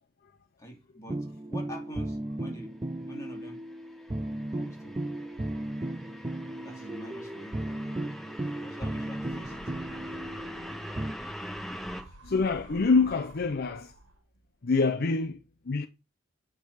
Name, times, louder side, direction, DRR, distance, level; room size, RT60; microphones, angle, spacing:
voice 1, 0.6-2.7 3.1-3.6 4.5-5.0 6.6-7.6 8.6-9.7 11.9-12.1, equal, 15° left, 2.7 m, -45 dB
sound 1, 1.1-11.1, right 1 dB, 20° right, 0.4 m, -36 dB
sound 2, 2.9-12.0, equal, ahead, 1.4 m, -43 dB
sound 3, 9.1-14.4, right 1 dB, 85° right, 1.5 m, -52 dB
voice 2, 12.2-13.9 14.6-15.9, left 4 dB, 55° left, 0.6 m, -26 dB
9.4 x 3.6 x 6.4 m
head